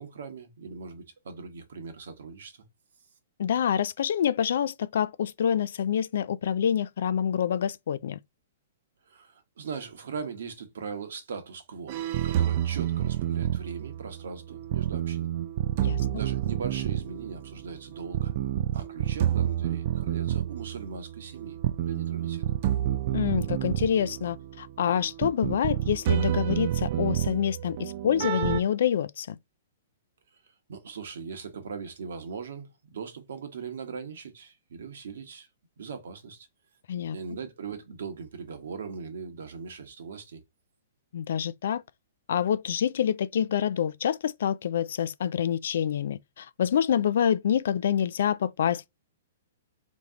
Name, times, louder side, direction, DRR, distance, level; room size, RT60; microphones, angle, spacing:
voice 1, 0.0-2.6 9.1-15.3 16.1-18.3 18.7-22.4 30.7-35.5 35.8-36.5 37.1-40.4, right 5 dB, 75° right, 1.2 m, -40 dB
voice 2, 3.4-8.2 15.8-16.0 23.1-29.4 36.9-37.2 41.1-41.8 42.3-48.9, left 9 dB, 70° left, 0.3 m, -27 dB
sound 1, 11.9-28.6, right 11 dB, 50° right, 0.4 m, -29 dB
3.4 x 3.1 x 3.7 m
hypercardioid pair, 135°, 0 cm